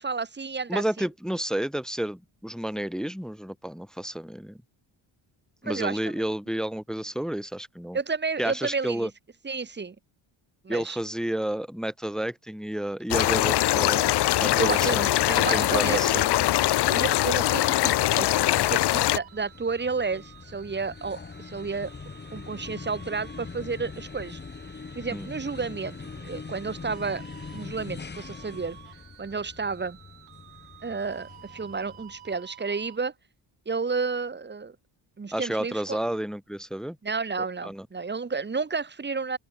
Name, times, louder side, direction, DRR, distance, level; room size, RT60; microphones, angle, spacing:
voice 1, 0.0-1.1 5.6-6.2 7.9-9.1 9.4-10.0 10.6-11.0 14.6-15.0 15.2-16.3 16.9-21.9 22.3-24.4 24.9-27.2 27.5-28.8 29.2-30.0 30.8-33.1 33.7-34.8 35.2-36.0 37.0-39.4, right 4 dB, 20° right, 2.3 m, -31 dB
voice 2, 0.7-4.6 5.6-8.0 8.4-9.1 10.7-15.1 15.5-16.3 16.7-16.8 25.1-25.3 35.3-37.0 37.6-37.9, right 1 dB, ahead, 0.4 m, -31 dB
sound 1, 13.1-19.2, left 14 dB, 55° left, 0.6 m, -22 dB
sound 2, 17.1-33.0, right 12 dB, 80° right, 3.1 m, -51 dB
sound 3, 18.3-32.4, left 5 dB, 20° left, 1.6 m, -43 dB
open air
wide cardioid pair, 180°, 49 cm